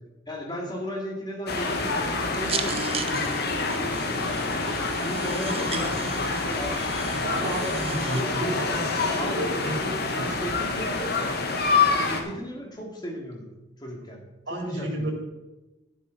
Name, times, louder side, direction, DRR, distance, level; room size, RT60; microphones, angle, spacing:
voice 1, 0.3-4.7 5.0-6.9 7.4-8.5 9.1-9.8 10.2-11.4 11.9-13.5 13.8-14.2 14.5-15.1, equal, 25° left, 0 dB, 2.6 m, -36 dB
sound 1, 1.5-12.2, left 4 dB, 60° left, 1.6 m, -27 dB
sound 2, 1.7-8.2, right 5 dB, 30° right, 0.9 m, -36 dB
voice 2, 7.2-10.5 14.5-15.1, right 1 dB, 70° right, 0 dB, 4.0 m, -31 dB
12.5 x 11.0 x 4.2 m, 1.0 s
head